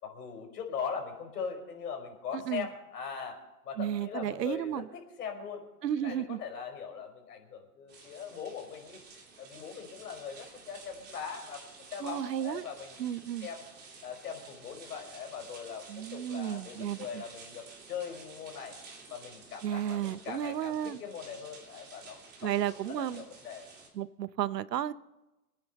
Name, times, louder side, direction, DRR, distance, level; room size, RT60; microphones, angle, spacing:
voice 1, 0.0-5.7 6.0-9.0 9.4-11.6 11.9-13.0 13.4-13.7 14.0-15.8 16.1-18.8 19.1-22.5 22.9-23.7, left 6 dB, 75° left, 3 dB, 5.3 m, -40 dB
voice 2, 3.8-4.9 5.8-6.4 12.0-12.6 13.0-13.5 15.9-17.2 19.6-21.0 22.4-23.2 23.9-24.9, right 10 dB, 90° right, 16 dB, 0.9 m, -33 dB
sound 1, 7.9-23.9, right 4 dB, 20° right, 3.3 m, -52 dB
26.0 x 9.7 x 4.2 m, 0.99 s
hypercardioid pair, 140°, 47 cm